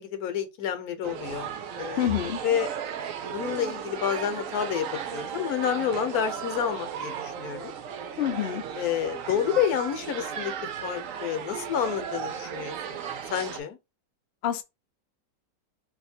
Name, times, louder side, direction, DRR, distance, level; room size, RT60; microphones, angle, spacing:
voice 1, 0.0-2.1 2.4-2.7 3.3-7.7 8.8-10.5 10.8-13.0 13.3-13.8, left 9 dB, 65° left, 1.1 m, -29 dB
sound 1, 1.0-13.6, right 8 dB, 70° right, 0.8 m, -35 dB
voice 2, 2.0-2.4 8.2-8.6 14.4-14.6, left 10 dB, 90° left, 0.5 m, -26 dB
2.8 x 2.6 x 4.2 m
omnidirectional pair, 1.9 m